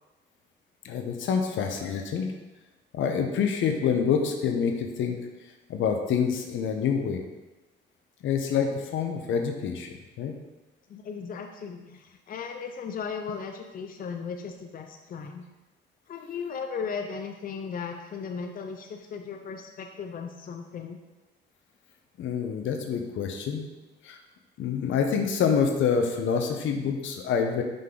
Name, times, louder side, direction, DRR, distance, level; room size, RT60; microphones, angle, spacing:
voice 1, 0.8-2.3 2.9-5.2 5.7-7.2 8.2-10.3 22.2-23.6 24.0-24.2 24.6-27.6, left 6 dB, 75° left, 4 dB, 0.9 m, -27 dB
voice 2, 10.9-15.4 16.1-21.0, left 6 dB, 45° left, 4 dB, 0.6 m, -36 dB
5.8 x 5.2 x 3.8 m, 1.1 s
cardioid pair, 90°, 20 cm